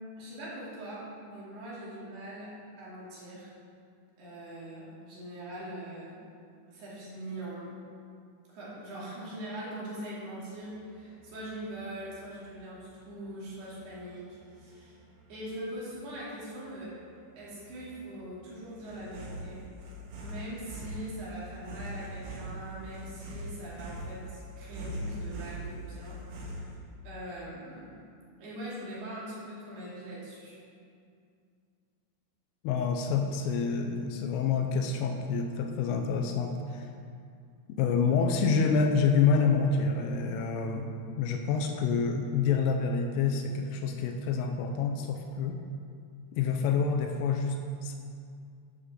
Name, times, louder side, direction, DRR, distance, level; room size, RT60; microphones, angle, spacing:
voice 1, 0.2-3.5 4.2-6.2 6.7-7.7 8.5-15.0 15.3-17.0 17.4-19.7 20.2-26.2 26.6-26.7 27.0-28.0 28.4-30.6, right 1 dB, 55° right, -8 dB, 4.1 m, -42 dB
sound 1, 10.5-26.8, right 1 dB, 85° right, 4.5 m, -43 dB
voice 2, 32.6-36.9 37.7-40.9 41.2-45.6 46.3-48.0, left 5 dB, 80° left, 3 dB, 3.2 m, -27 dB
11.0 x 5.6 x 6.6 m, 2.3 s
omnidirectional pair, 5.9 m